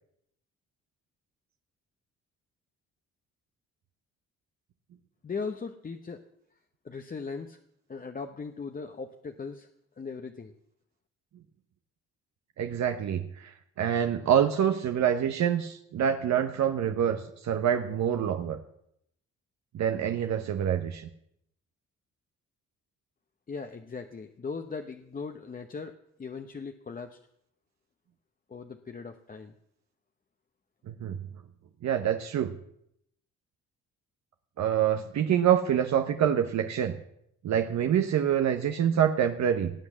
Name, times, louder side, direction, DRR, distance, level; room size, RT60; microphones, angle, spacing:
voice 1, 5.2-6.2 6.8-7.6 7.9-9.7 10.0-10.5 23.5-27.2 28.5-29.5, left 4 dB, 30° left, 6 dB, 0.9 m, -39 dB
voice 2, 12.6-13.5 13.8-18.6 19.7-21.1 30.9-31.2 31.8-32.5 34.6-37.0 37.4-39.7, right 9 dB, 65° right, 7 dB, 1.1 m, -26 dB
18.5 x 7.9 x 7.4 m, 0.76 s
cardioid pair, 90°, 30 cm